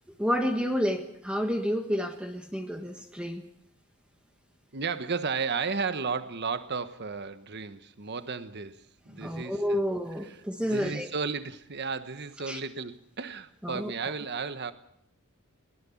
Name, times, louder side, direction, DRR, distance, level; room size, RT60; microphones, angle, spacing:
voice 1, 0.2-3.4 9.1-11.1 12.5-12.6 13.6-13.9, equal, 5° right, 5 dB, 1.4 m, -30 dB
voice 2, 4.7-9.8 10.2-10.4 10.6-14.7, right 5 dB, 50° right, 11 dB, 1.2 m, -34 dB
21.5 x 19.0 x 7.2 m, 0.67 s
head